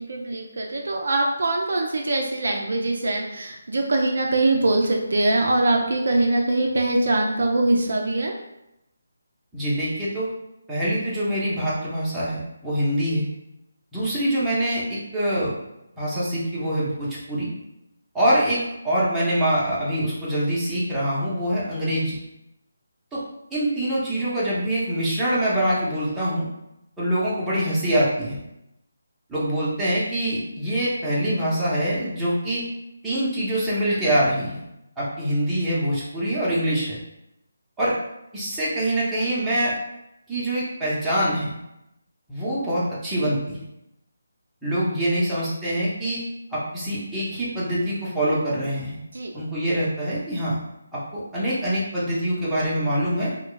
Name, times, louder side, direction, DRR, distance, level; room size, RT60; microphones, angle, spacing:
voice 1, 0.0-8.3 49.1-49.3, right 2 dB, 60° right, 1 dB, 0.4 m, -22 dB
voice 2, 9.5-10.3 10.7-13.3 13.9-15.5 16.0-17.5 18.1-22.2 23.1-23.2 23.5-26.5 27.0-28.4 29.3-32.6 33.0-34.6 35.0-37.0 37.8-37.9 38.3-39.7 40.3-41.6 42.3-43.6 44.6-46.2 46.5-49.0 49.3-50.5 50.9-53.3, right 1 dB, 5° right, -10 dB, 0.8 m, -24 dB
2.3 x 2.2 x 3.8 m, 0.87 s
figure-of-eight pair, 150°, 0 cm